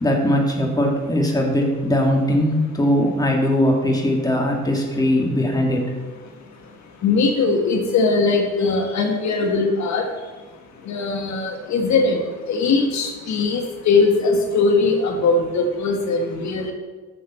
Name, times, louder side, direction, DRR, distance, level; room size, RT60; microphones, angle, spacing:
voice 1, 0.0-5.8, left 1 dB, 10° left, 0 dB, 2.2 m, -20 dB
voice 2, 7.0-10.0 10.9-12.2 12.5-16.7, left 4 dB, 70° left, 3 dB, 1.4 m, -20 dB
11.5 x 6.9 x 4.2 m, 1.3 s
cardioid pair, 90°, 30 cm